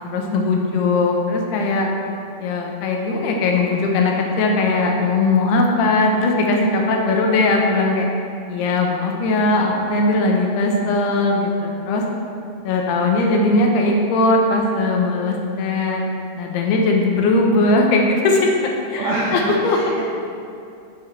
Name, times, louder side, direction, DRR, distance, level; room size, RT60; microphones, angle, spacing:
voice 1, 0.0-1.9 2.4-8.1 8.5-12.0 12.6-16.0 16.4-18.5 18.9-19.8, left 2 dB, 85° left, 1 dB, 3.0 m, -19 dB
voice 2, 18.9-20.0, right 2 dB, 55° right, -6 dB, 2.4 m, -24 dB
10.5 x 7.1 x 4.6 m, 2.5 s
omnidirectional pair, 4.5 m